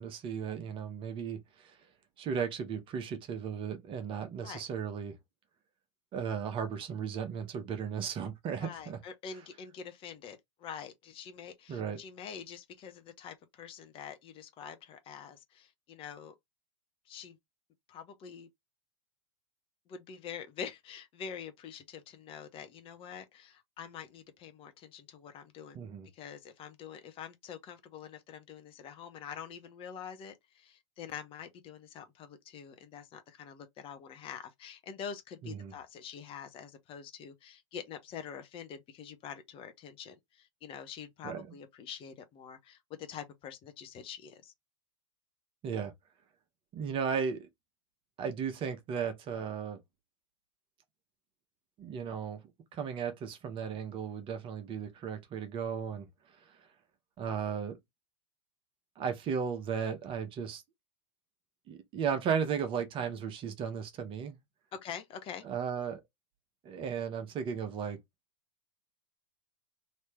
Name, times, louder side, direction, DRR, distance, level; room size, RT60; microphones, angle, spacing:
voice 1, 0.0-1.8 2.2-5.1 6.1-9.0 11.7-12.0 25.7-26.1 35.4-35.7 41.2-41.5 45.6-45.9 46.7-47.5 48.2-49.8 51.8-52.4 52.7-56.1 57.2-57.8 59.0-60.6 61.7-64.4 65.4-66.0 66.6-68.0, right 7 dB, 35° right, 1.1 m, -35 dB
voice 2, 8.6-16.3 17.1-17.4 17.9-18.5 19.9-25.8 26.1-44.5 64.7-65.4, left 7 dB, 35° left, 0.8 m, -46 dB
3.2 x 2.9 x 3.3 m
figure-of-eight pair, 95°, 16 cm